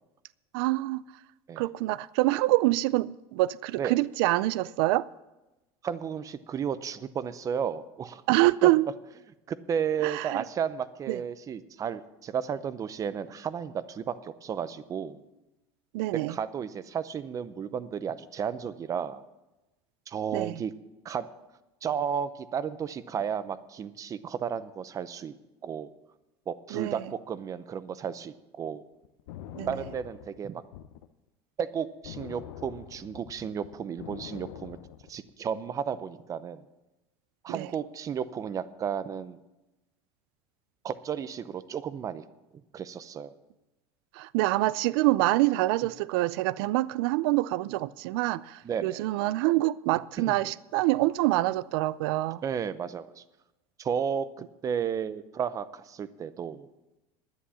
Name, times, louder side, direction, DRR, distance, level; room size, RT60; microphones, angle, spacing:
voice 1, 0.5-1.0 1.6-5.1 8.3-8.9 10.0-10.4 11.1-11.2 15.9-16.3 20.3-20.6 26.7-26.9 29.6-29.7 37.5-37.7 44.2-52.4, right 18 dB, 75° right, 0.4 m, -26 dB
voice 2, 5.8-8.2 8.6-8.7 9.5-15.2 16.3-19.2 20.1-20.7 21.0-21.3 21.8-25.3 25.6-25.9 26.5-28.8 29.7-30.6 31.6-34.8 35.1-36.6 37.4-39.4 40.8-42.2 42.7-43.3 48.6-49.1 50.2-50.4 52.4-53.2 53.8-54.3 54.6-56.7, right 7 dB, 25° right, 0.6 m, -33 dB
sound 1, 29.0-31.1 32.0-35.3, left 11 dB, 90° left, 0.7 m, -44 dB
11.5 x 9.7 x 7.1 m
supercardioid pair, 140°, 13 cm